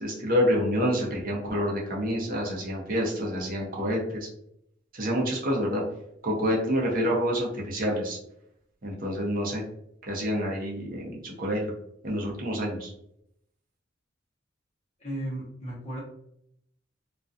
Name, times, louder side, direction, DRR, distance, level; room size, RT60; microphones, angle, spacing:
voice 1, 0.0-4.3 4.9-5.8 6.2-8.2 8.8-9.6 10.1-11.7 12.0-12.9, equal, 50° right, -2 dB, 0.7 m, -27 dB
voice 2, 15.0-16.0, right 1 dB, 35° left, -7 dB, 0.7 m, -35 dB
2.4 x 2.2 x 2.5 m, 0.75 s
head